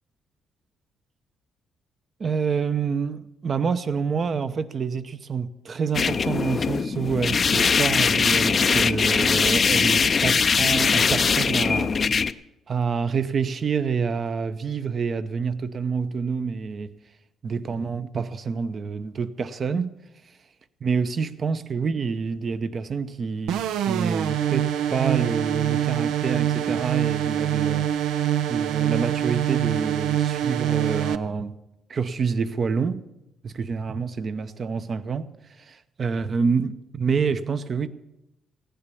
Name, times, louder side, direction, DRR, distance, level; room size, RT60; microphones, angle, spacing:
voice 1, 2.2-12.0 12.7-16.9 17.4-19.9 20.8-31.6 31.9-33.0 33.4-35.3 35.6-37.9, right 5 dB, 45° right, 0.8 m, -27 dB
sound 1, 5.9-12.3, left 5 dB, 40° left, 0.5 m, -21 dB
sound 2, 23.5-31.2, right 11 dB, 90° right, 0.5 m, -24 dB
15.5 x 10.5 x 7.0 m
cardioid pair, 90°, 0 cm